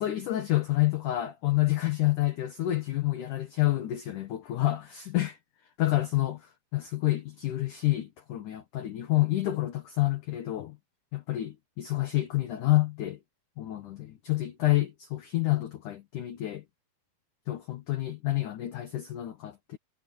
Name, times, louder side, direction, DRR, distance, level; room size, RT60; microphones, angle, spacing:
voice 1, 0.0-5.4 5.8-10.8 11.1-13.2 13.6-16.6 17.5-19.8, left 16 dB, 70° left, 2.0 m, -28 dB
omnidirectional pair, 5.3 m